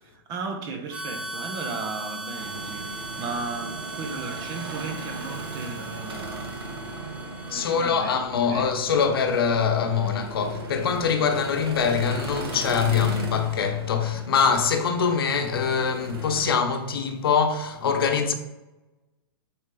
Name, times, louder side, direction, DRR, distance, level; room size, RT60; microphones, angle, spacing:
voice 1, 0.0-6.5 7.5-8.2 8.5-8.7, right 4 dB, 30° right, 1.1 m, -35 dB
Harmonica, 0.9-8.2, right 2 dB, 10° right, 0.8 m, -38 dB
sound 1, 2.3-16.5, right 3 dB, 90° right, 2.2 m, -37 dB
voice 2, 7.5-18.3, left 6 dB, 75° left, 1.1 m, -24 dB
8.4 x 4.3 x 3.9 m
hypercardioid pair, 155°, 12 cm